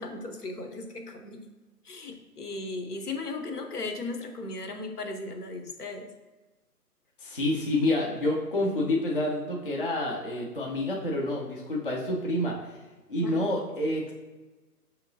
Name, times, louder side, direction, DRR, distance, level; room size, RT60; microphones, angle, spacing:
voice 1, 0.0-1.4 1.8-6.1 13.2-13.5, left 3 dB, 70° left, 5 dB, 0.8 m, -37 dB
voice 2, 7.2-12.8 13.1-14.1, left 1 dB, 35° left, -2 dB, 0.5 m, -28 dB
5.7 x 2.8 x 2.7 m, 1.2 s
figure-of-eight pair, 145°, 48 cm